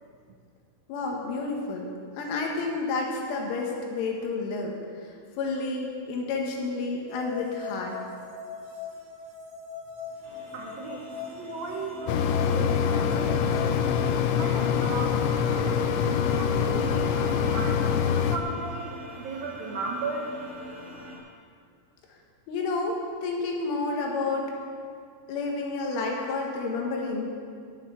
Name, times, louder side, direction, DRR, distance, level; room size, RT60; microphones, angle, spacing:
voice 1, 0.9-1.9 2.2-4.7 5.0-8.0 22.5-24.5 25.3-27.3, left 3 dB, 75° left, 0 dB, 4.0 m, -30 dB
sound 1, 7.1-14.0, left 5 dB, 60° right, 3.1 m, -41 dB
sound 2, 10.2-21.2, right 1 dB, 15° left, 0.7 m, -44 dB
voice 2, 10.5-13.8 14.3-15.9 16.4-17.8 18.3-20.3, right 3 dB, 85° right, -1 dB, 2.0 m, -36 dB
Mechanisms, 12.1-18.4, left 7 dB, 90° left, 2.6 m, -25 dB
12.0 x 8.0 x 8.8 m, 2.2 s
omnidirectional pair, 5.9 m